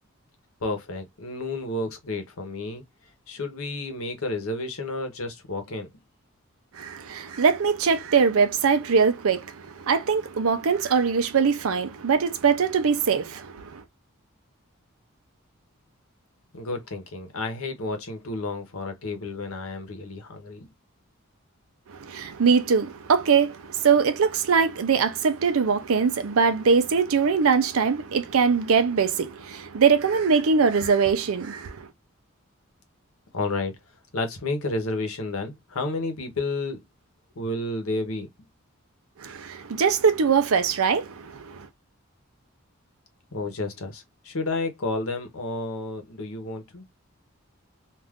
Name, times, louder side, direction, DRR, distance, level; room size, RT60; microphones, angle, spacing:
voice 1, 0.6-2.8 3.3-5.9 16.5-20.7 33.3-33.8 34.1-36.8 37.4-38.3 43.3-46.8, left 2 dB, 80° left, 0.9 m, -31 dB
voice 2, 6.8-13.8 21.9-31.9 39.2-41.7, right 5 dB, 80° right, 0.5 m, -22 dB
2.5 x 2.4 x 3.4 m
head